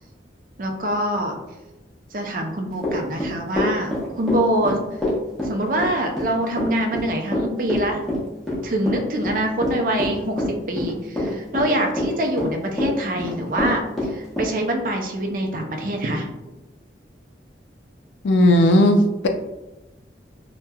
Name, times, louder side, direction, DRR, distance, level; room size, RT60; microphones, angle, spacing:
voice 1, 0.6-1.4 2.1-5.1 5.4-8.0 8.6-16.3, right 1 dB, 50° right, 2 dB, 0.4 m, -25 dB
Run / Walk footsteps, 2.8-14.5, left 1 dB, ahead, 0.7 m, -25 dB
voice 2, 18.2-19.3, left 1 dB, 85° left, 5 dB, 0.4 m, -15 dB
3.0 x 2.1 x 2.2 m, 0.99 s
head